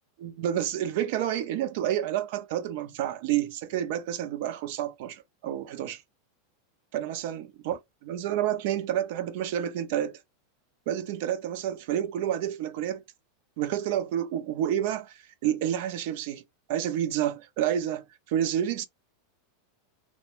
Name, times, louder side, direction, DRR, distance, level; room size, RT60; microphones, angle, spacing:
voice 1, 0.2-6.0 6.9-10.2 10.9-13.0 13.6-16.4 16.7-18.9, right 11 dB, 60° right, 0.5 m, -29 dB
2.2 x 2.1 x 2.9 m
hypercardioid pair, 100°, 0 cm